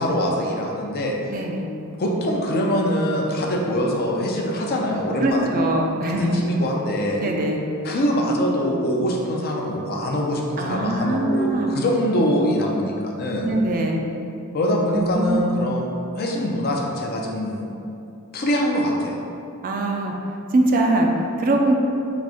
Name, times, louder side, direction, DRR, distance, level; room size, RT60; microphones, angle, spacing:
voice 1, 0.0-1.1 2.0-5.5 6.2-7.2 7.8-13.5 14.5-15.9 16.1-17.6 18.3-19.2, equal, 45° left, -1 dB, 0.5 m, -23 dB
voice 2, 1.3-1.7 5.2-6.4 7.2-7.6 10.6-11.7 13.4-14.0 14.9-15.5 19.6-20.1 20.5-21.7, right 2 dB, 40° right, 1 dB, 0.4 m, -22 dB
4.0 x 2.5 x 4.8 m, 2.7 s
head